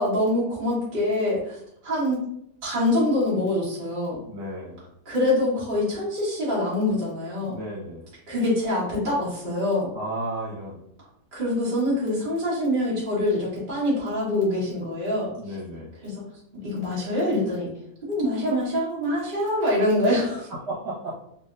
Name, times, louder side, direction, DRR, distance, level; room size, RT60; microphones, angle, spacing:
voice 1, 0.0-2.2 2.6-4.2 5.0-7.5 8.3-9.9 11.3-15.3 16.0-16.2 16.6-17.7 18.1-20.5, left 1 dB, 30° right, -8 dB, 1.5 m, -25 dB
voice 2, 4.3-4.8 7.4-8.1 9.9-10.8 15.1-15.9 20.5-21.2, right 1 dB, 75° right, -5 dB, 1.5 m, -34 dB
3.5 x 2.7 x 2.5 m, 0.74 s
omnidirectional pair, 1.8 m